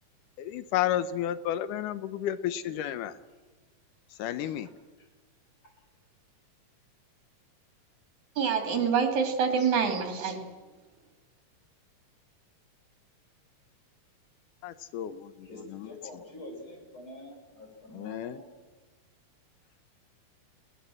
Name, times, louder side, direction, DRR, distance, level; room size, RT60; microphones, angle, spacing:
voice 1, 0.4-3.1 4.2-4.7 14.6-15.9 17.9-18.4, left 11 dB, 85° left, 14 dB, 2.3 m, -32 dB
voice 2, 8.4-10.4, right 6 dB, 65° right, 5 dB, 3.8 m, -26 dB
voice 3, 15.4-18.5, left 1 dB, 40° left, 0 dB, 6.3 m, -46 dB
21.0 x 19.5 x 7.6 m, 1.3 s
omnidirectional pair, 3.6 m